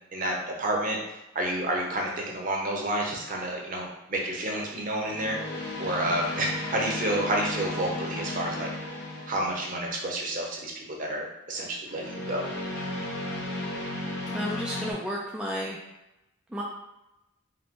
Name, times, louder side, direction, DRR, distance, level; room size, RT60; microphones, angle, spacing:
voice 1, 0.1-1.0 1.3-5.4 5.8-8.7 9.3-12.4, right 1 dB, 40° right, -1 dB, 0.8 m, -30 dB
sound 1, 3.0-3.4 5.0-10.1 11.9-14.9, left 2 dB, 55° left, 1.0 m, -35 dB
voice 2, 14.3-15.8 16.5-16.6, equal, 5° right, -4 dB, 0.3 m, -32 dB
4.8 x 2.2 x 3.7 m, 0.93 s
head